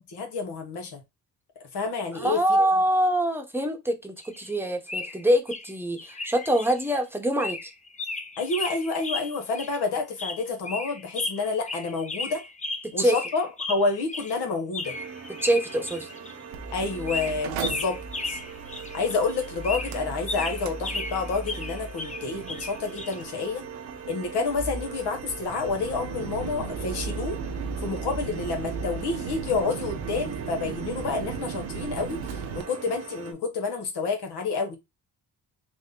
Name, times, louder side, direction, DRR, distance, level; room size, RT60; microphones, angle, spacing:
voice 1, 0.1-1.0 1.6-2.7 8.4-12.4 12.9-14.9 16.7-18.0 18.2-18.4 18.9-23.6 24.1-27.4 27.8-34.8, left 4 dB, 70° left, 1.1 m, -29 dB
voice 2, 2.1-7.7 12.8-13.2 15.4-16.1, right 1 dB, 5° right, 0.9 m, -24 dB
sound 1, 4.2-4.6 4.9-5.7 6.0-7.0 7.4-9.8 10.2-14.4 14.7-16.3 17.1-19.2 19.4-23.2, left 3 dB, 15° left, 0.6 m, -35 dB
sound 2, 14.8-33.3, right 6 dB, 35° right, 1.0 m, -41 dB
Mechanical fan, 16.5-32.6, right 5 dB, 90° right, 0.6 m, -36 dB
3.6 x 2.1 x 3.7 m
supercardioid pair, 60°, 42 cm